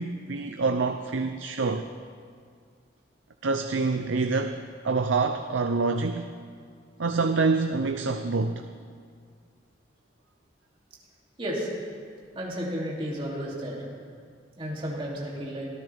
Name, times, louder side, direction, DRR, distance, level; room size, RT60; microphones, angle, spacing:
voice 1, 0.0-1.8 3.4-4.6 4.8-6.3 7.0-8.6, right 4 dB, 90° right, 7 dB, 0.6 m, -26 dB
voice 2, 12.3-13.9 14.6-15.7, equal, 30° right, -4 dB, 2.8 m, -32 dB
24.5 x 14.0 x 3.5 m, 2.1 s
head